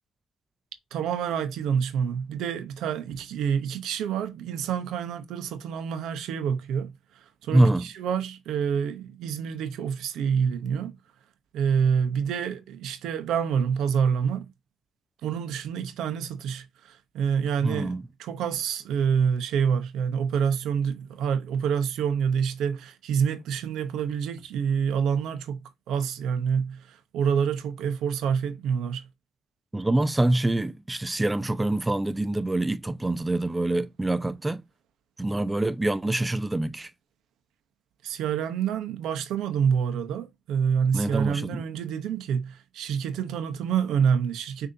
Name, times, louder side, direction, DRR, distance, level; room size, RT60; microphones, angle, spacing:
voice 1, 0.9-6.9 7.4-11.0 11.5-14.5 15.2-17.9 18.2-29.1 38.0-44.7, right 7 dB, 85° right, 0.7 m, -27 dB
voice 2, 7.5-7.9 17.6-18.0 29.7-34.6 35.2-36.9 40.9-41.6, right 2 dB, 15° right, 0.4 m, -25 dB
6.4 x 2.7 x 2.6 m
cardioid pair, 90°, 0 cm